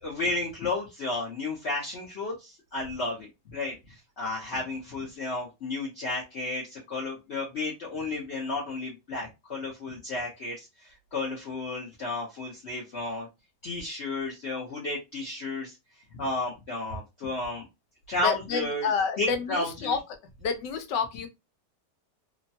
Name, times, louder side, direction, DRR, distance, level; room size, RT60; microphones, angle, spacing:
voice 1, 0.0-13.3 13.6-15.8 16.1-17.6 18.1-18.9 19.2-19.9, left 2 dB, 55° left, 0.8 m, -32 dB
voice 2, 18.2-20.0 20.4-21.3, left 5 dB, 80° left, 1.3 m, -29 dB
3.1 x 2.2 x 2.7 m
omnidirectional pair, 1.9 m